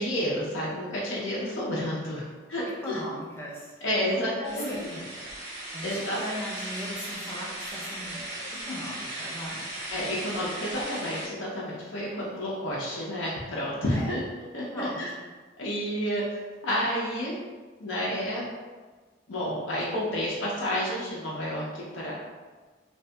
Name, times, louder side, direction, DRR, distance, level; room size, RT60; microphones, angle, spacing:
voice 1, 0.0-3.0 3.8-4.9 5.8-6.2 9.9-14.2 14.5-15.1 15.6-16.2 16.6-17.4 17.8-18.5 19.3-22.1, equal, 90° left, -6 dB, 0.6 m, -30 dB
voice 2, 2.8-3.8 4.1-5.3 5.7-8.2 8.7-9.6 13.9-14.2 14.7-15.0, equal, 15° left, -5 dB, 0.5 m, -38 dB
sound 1, 4.4-11.3, right 1 dB, 65° right, 0.7 m, -37 dB
2.6 x 2.6 x 2.2 m, 1.4 s
head